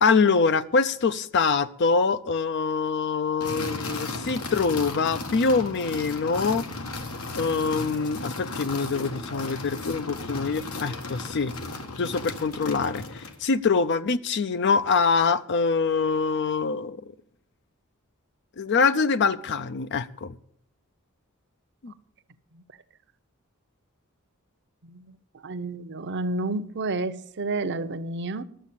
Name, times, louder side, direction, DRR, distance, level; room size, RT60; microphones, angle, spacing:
voice 1, 0.0-6.6 7.4-11.5 12.0-17.0 18.6-20.4 21.8-21.9, left 4 dB, 55° left, 0.5 m, -24 dB
sound 1, 3.4-13.4, left 2 dB, 85° left, 1.7 m, -35 dB
voice 2, 25.4-28.4, right 2 dB, 55° right, 0.7 m, -30 dB
12.0 x 7.3 x 8.5 m
head